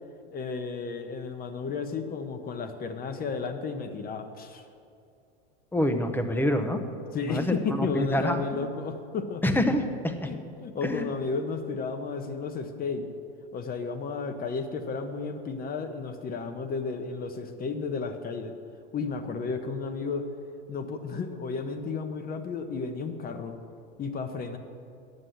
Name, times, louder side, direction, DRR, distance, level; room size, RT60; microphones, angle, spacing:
voice 1, 0.3-4.6 7.1-9.4 10.3-13.1 13.5-18.5 18.9-20.2 20.7-23.6 24.0-24.6, left 4 dB, 30° left, 7 dB, 1.1 m, -33 dB
voice 2, 5.7-6.8 7.2-8.4 9.4-10.3 10.8-11.1, left 1 dB, 5° left, 7 dB, 0.9 m, -26 dB
9.9 x 7.7 x 7.8 m, 2.5 s
supercardioid pair, 115°, 30 cm